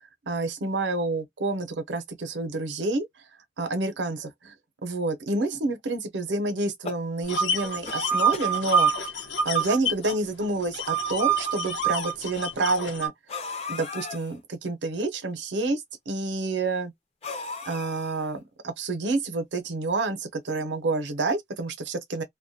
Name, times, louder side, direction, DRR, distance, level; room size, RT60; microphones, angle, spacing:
voice 1, 0.2-3.1 3.6-4.5 4.8-8.9 9.4-13.1 13.7-16.9 17.7-22.2, right 3 dB, 75° right, 0.6 m, -28 dB
sound 1, 6.6-7.5 7.9-8.6 9.4-9.5 9.8-9.9 10.8-10.9 13.3-14.3 17.2-18.4, left 4 dB, 35° left, 0.5 m, -37 dB
sound 2, 7.3-10.1 10.4-13.1, right 4 dB, 75° left, 0.8 m, -26 dB
2.2 x 2.1 x 2.6 m
head